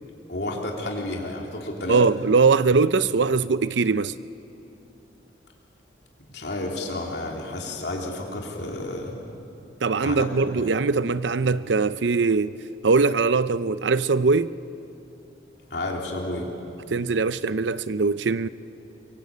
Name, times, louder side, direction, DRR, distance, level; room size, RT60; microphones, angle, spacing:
voice 1, 0.3-2.0 6.3-9.2 10.0-10.7 15.7-16.5, left 1 dB, 65° left, 3.3 m, -31 dB
voice 2, 1.9-4.1 9.8-12.5 12.8-14.5 16.9-18.5, right 4 dB, 80° right, 0.6 m, -21 dB
24.5 x 23.0 x 8.5 m
head